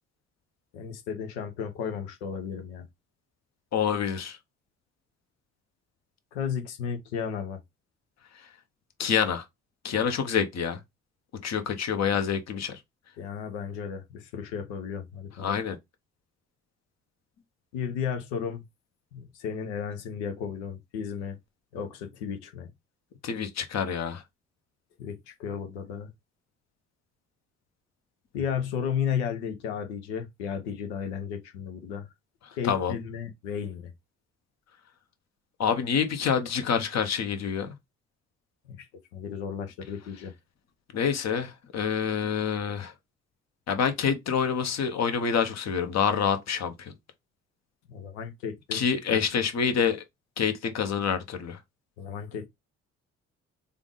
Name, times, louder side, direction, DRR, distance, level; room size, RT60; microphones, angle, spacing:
voice 1, 0.7-2.9 6.3-7.6 13.2-15.6 17.7-18.6 19.1-21.4 21.7-22.7 25.0-26.1 28.3-32.1 32.5-33.9 38.7-38.9 39.1-40.3 47.9-48.8 49.1-49.2 52.0-52.5, left 7 dB, 85° left, 0.8 m, -34 dB
voice 2, 3.7-4.4 9.0-9.4 9.8-10.8 11.4-12.8 15.4-15.8 23.2-24.2 32.7-32.9 35.6-37.7 40.9-42.9 43.7-46.9 48.7-50.0 50.4-51.6, left 7 dB, 55° left, 1.0 m, -27 dB
3.5 x 2.5 x 3.8 m
hypercardioid pair, 50°, 33 cm